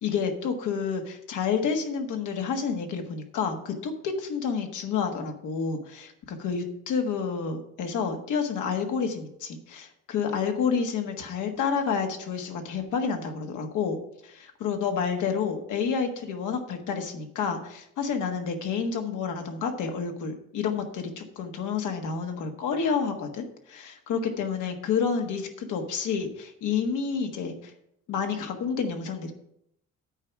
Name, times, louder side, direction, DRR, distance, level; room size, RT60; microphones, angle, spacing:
voice 1, 0.0-14.0 14.2-27.7 28.1-29.3, left 6 dB, 80° left, 4 dB, 1.5 m, -29 dB
8.9 x 4.7 x 7.4 m, 0.76 s
cardioid pair, 90°, 30 cm